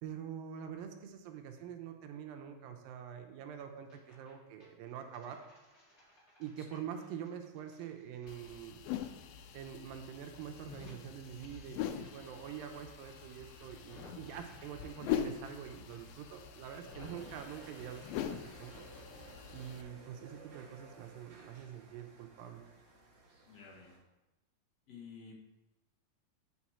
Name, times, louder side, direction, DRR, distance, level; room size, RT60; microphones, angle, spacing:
voice 1, 0.0-5.5 6.4-8.8 9.5-18.9 19.5-22.6, right 8 dB, 85° right, 5 dB, 2.5 m, -45 dB
sound 1, 3.6-4.3 4.6-9.7 9.9-18.9, equal, 25° left, 3.0 m, -61 dB
sound 2, 8.3-19.8, left 10 dB, 85° left, 2.4 m, -43 dB
sound 3, 17.0-24.0, right 3 dB, 55° right, 2.6 m, -56 dB
voice 2, 23.5-24.0 24.9-25.5, left 5 dB, 60° left, -2 dB, 2.0 m, -52 dB
9.4 x 6.0 x 4.2 m, 1.0 s
omnidirectional pair, 4.1 m